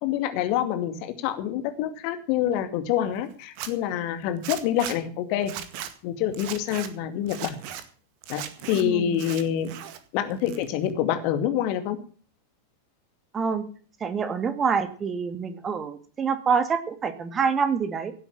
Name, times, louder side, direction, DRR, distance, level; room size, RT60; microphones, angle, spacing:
voice 1, 0.0-5.5 6.0-7.6 8.3-9.7 10.1-12.0, left 10 dB, 45° left, 8 dB, 2.3 m, -26 dB
Zipper (clothing), 3.4-3.7 4.4-5.0 5.4-5.9 6.3-6.9 7.3-7.8 8.2-8.8 9.1-10.0 10.3-10.9, right 10 dB, 45° right, 1.9 m, -37 dB
voice 2, 8.7-9.2 13.3-13.7 14.0-18.1, right 6 dB, 20° right, 10 dB, 2.1 m, -26 dB
16.5 x 8.2 x 7.4 m, 0.42 s
figure-of-eight pair, 90°, 0 cm